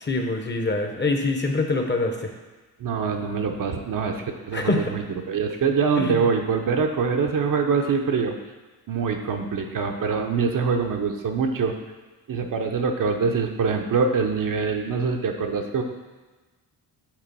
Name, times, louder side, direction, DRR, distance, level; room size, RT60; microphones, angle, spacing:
voice 1, 0.0-2.3 4.5-5.0 6.0-6.2, left 3 dB, 25° left, 4 dB, 0.9 m, -25 dB
voice 2, 2.8-8.3 8.9-11.8 12.3-15.8, right 5 dB, 50° right, 4 dB, 0.8 m, -24 dB
6.2 x 3.9 x 5.3 m, 1.2 s
cardioid pair, 75°, 42 cm